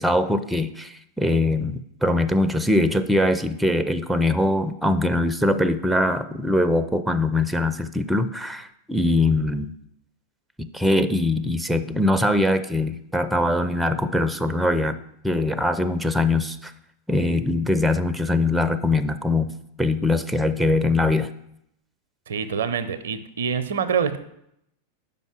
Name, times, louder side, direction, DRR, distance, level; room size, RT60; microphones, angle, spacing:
voice 1, 0.0-9.7 10.6-15.0 15.2-16.7 17.1-19.5 19.8-21.3, left 1 dB, 5° right, 10 dB, 0.4 m, -22 dB
voice 2, 22.3-24.2, right 7 dB, 65° right, 13 dB, 0.5 m, -25 dB
5.4 x 5.2 x 6.0 m, 0.77 s
figure-of-eight pair, 90°, 0 cm